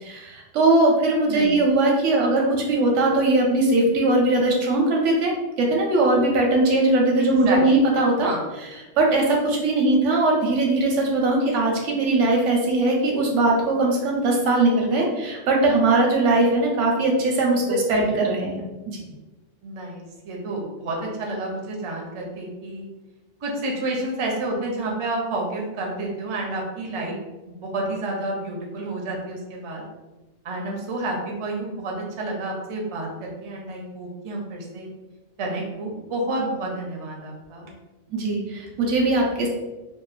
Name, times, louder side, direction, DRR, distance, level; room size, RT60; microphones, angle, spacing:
voice 1, 0.0-8.3 9.0-18.6 18.9-19.0 38.1-39.5, right 2 dB, 85° right, -1 dB, 1.0 m, -20 dB
voice 2, 1.3-1.6 7.5-7.6 8.2-8.4 17.7-18.2 19.6-22.9 23.4-27.2 27.4-29.8 30.4-34.9 35.4-37.7, right 2 dB, 50° right, -1 dB, 0.3 m, -30 dB
2.9 x 2.1 x 2.4 m, 1.1 s
omnidirectional pair, 1.2 m